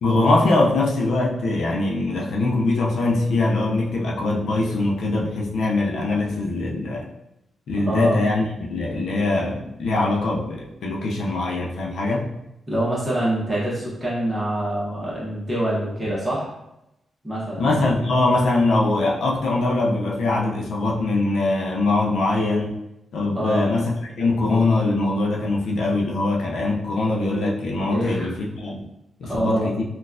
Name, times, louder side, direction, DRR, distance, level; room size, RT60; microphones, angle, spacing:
voice 1, 0.0-7.1 7.7-12.3 17.6-22.7 23.1-28.9 29.2-29.8, left 2 dB, 75° left, -2 dB, 0.4 m, -22 dB
voice 2, 7.9-8.2 12.7-16.5 17.2-17.8 23.3-23.7 27.9-28.3 29.2-29.7, right 1 dB, 15° right, -7 dB, 1.1 m, -25 dB
3.9 x 2.3 x 2.5 m, 0.86 s
wide cardioid pair, 170°, 0 cm